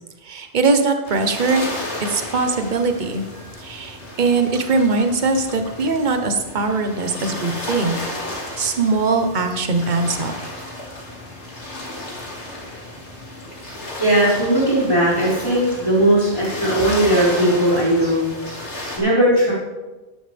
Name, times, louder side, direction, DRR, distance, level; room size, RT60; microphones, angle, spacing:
voice 1, 0.2-3.2 3.6-8.0 8.6-10.3, right 3 dB, 45° right, 6 dB, 1.2 m, -21 dB
sound 1, 1.0-19.0, left 1 dB, 75° left, 2.9 m, -33 dB
voice 2, 14.0-19.5, right 1 dB, 25° left, -13 dB, 5.0 m, -18 dB
13.5 x 12.0 x 3.5 m, 1.2 s
omnidirectional pair, 1.2 m